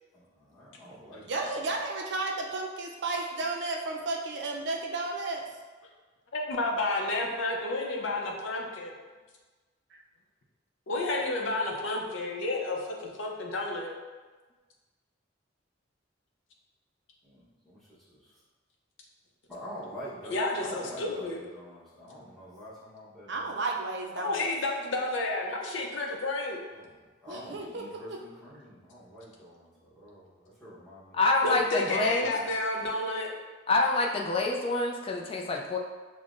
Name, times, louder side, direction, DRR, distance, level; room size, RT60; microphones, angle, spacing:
voice 1, 0.5-1.4 17.2-17.8 18.1-18.3 19.5-23.6 26.7-26.9 27.2-31.2 31.9-32.5, equal, ahead, -10 dB, 1.0 m, -46 dB
voice 2, 1.2-5.4 9.9-10.0 23.3-24.5 27.3-28.2, right 3 dB, 65° right, 1 dB, 0.5 m, -33 dB
voice 3, 6.3-8.9 10.9-14.0 20.2-21.4 24.2-26.6 31.4-33.3, left 2 dB, 75° left, 0 dB, 0.6 m, -31 dB
voice 4, 31.1-32.3 33.7-35.8, left 2 dB, 30° left, 1 dB, 0.4 m, -26 dB
5.2 x 2.1 x 2.5 m, 1.3 s
head